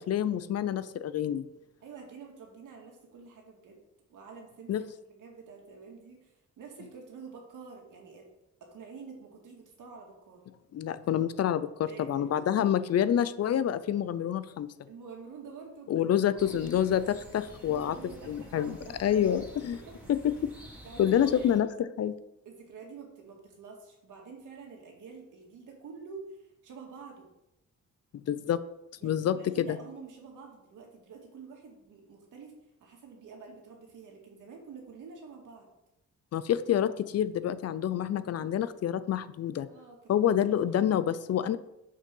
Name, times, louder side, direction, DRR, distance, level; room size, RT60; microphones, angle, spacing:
voice 1, 0.0-1.4 4.7-4.8 10.7-14.7 15.9-18.0 18.3-19.8 20.1-20.3 21.0-22.1 28.3-28.6 29.0-29.8 36.3-39.7 40.1-41.6, left 10 dB, 55° left, 14 dB, 0.5 m, -27 dB
voice 2, 1.8-3.8 4.1-8.3 8.6-10.4 11.8-12.3 14.9-16.0 16.3-16.7 17.6-19.4 19.7-20.0 20.8-21.5 22.5-27.3 29.0-32.5 32.8-35.7 39.7-40.1, right 5 dB, 80° right, 1 dB, 2.2 m, -48 dB
sound 1, 16.4-21.6, right 1 dB, 5° right, 2.4 m, -49 dB
6.6 x 6.4 x 5.4 m, 0.87 s
cardioid pair, 125°, 31 cm